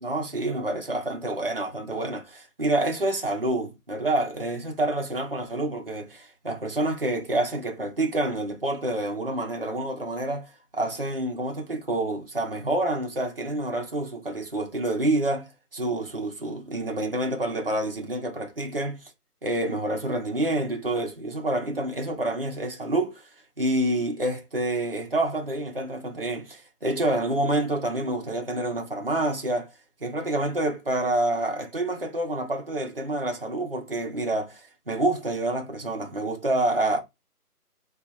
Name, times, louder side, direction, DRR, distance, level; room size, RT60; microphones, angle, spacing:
voice 1, 0.0-10.5 10.7-19.0 19.4-23.2 23.6-29.7 30.0-37.0, right 1 dB, 40° right, 0.6 m, -28 dB
2.4 x 2.4 x 4.0 m
hypercardioid pair, 180°, 47 cm